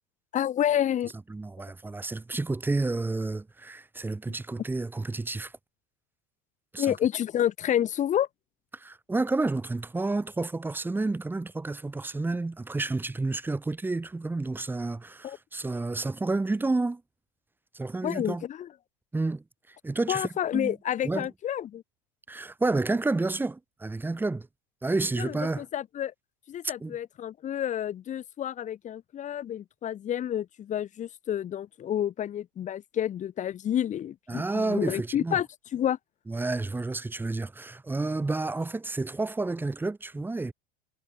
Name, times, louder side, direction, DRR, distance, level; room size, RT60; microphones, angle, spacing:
voice 1, 0.3-1.1 6.8-8.3 15.2-15.4 18.0-18.7 20.1-21.8 25.2-26.1 26.5-35.5 35.7-36.0, left 10 dB, 25° left, 1.2 m, -29 dB
voice 2, 1.3-5.5 6.7-7.0 8.7-17.0 17.7-18.4 19.1-20.8 21.0-21.3 22.3-24.5 24.8-25.7 26.8-27.0 34.3-35.4 36.3-40.5, right 3 dB, 5° right, 1.3 m, -30 dB
supercardioid pair, 150°, 30 cm